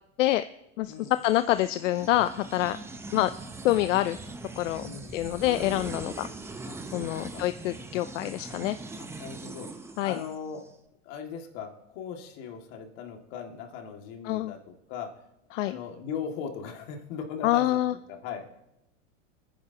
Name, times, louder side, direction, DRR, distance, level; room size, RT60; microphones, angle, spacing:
voice 1, 0.8-2.8 3.1-3.3 3.6-4.2 4.6-4.9 5.1-6.3 6.9-8.8 10.0-10.2 14.3-14.5 15.5-15.8 17.4-17.9, left 15 dB, 80° left, 12 dB, 0.6 m, -26 dB
sound 1, 1.0-10.7, right 3 dB, 5° right, 0.6 m, -41 dB
voice 2, 4.8-5.2 6.7-7.5 9.0-10.6 11.0-15.1 15.6-18.6, left 7 dB, 50° left, 2 dB, 2.2 m, -39 dB
27.0 x 10.0 x 2.9 m, 0.85 s
supercardioid pair, 135°, 37 cm